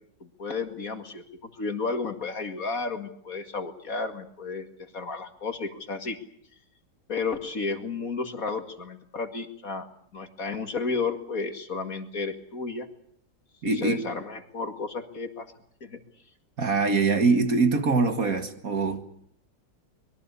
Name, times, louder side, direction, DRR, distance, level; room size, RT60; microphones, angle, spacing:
voice 1, 0.2-4.7 4.9-6.2 7.1-9.9 10.1-12.9 13.6-15.5 15.8-16.0, left 4 dB, 50° left, 2.5 m, -32 dB
voice 2, 13.6-14.0 16.6-19.1, right 4 dB, 50° right, 2.2 m, -23 dB
24.5 x 22.0 x 8.4 m
omnidirectional pair, 2.0 m